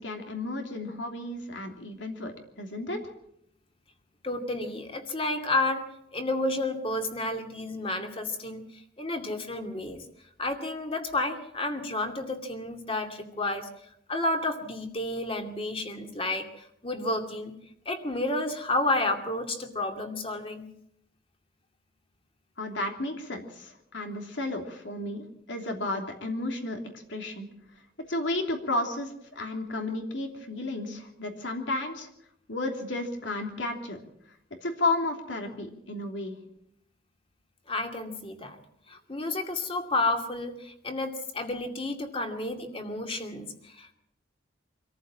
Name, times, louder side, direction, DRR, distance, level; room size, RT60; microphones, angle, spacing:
voice 1, 0.0-3.0 22.6-26.8 27.1-27.5 28.1-32.1 32.5-34.0 34.6-36.4, left 2 dB, 75° left, 3 dB, 3.0 m, -32 dB
voice 2, 4.2-5.9 6.1-10.0 10.4-13.7 14.1-17.5 17.9-20.6 37.7-38.6 38.9-43.9, left 2 dB, 30° left, 5 dB, 2.4 m, -31 dB
25.0 x 14.5 x 7.3 m, 0.76 s
head